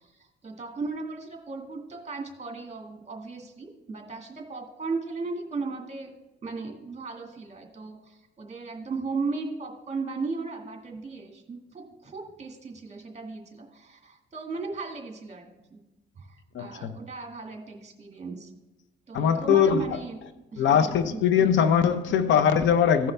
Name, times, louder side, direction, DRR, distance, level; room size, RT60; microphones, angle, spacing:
voice 1, 0.4-6.1 6.4-15.4 15.7-15.8 16.2-18.5 19.1-20.2 20.5-21.2, right 4 dB, 35° right, 1.9 m, -36 dB
voice 2, 16.5-16.9 19.1-19.8 20.6-23.1, left 8 dB, 70° left, 0.7 m, -21 dB
16.0 x 5.5 x 3.4 m
cardioid pair, 90°, 20 cm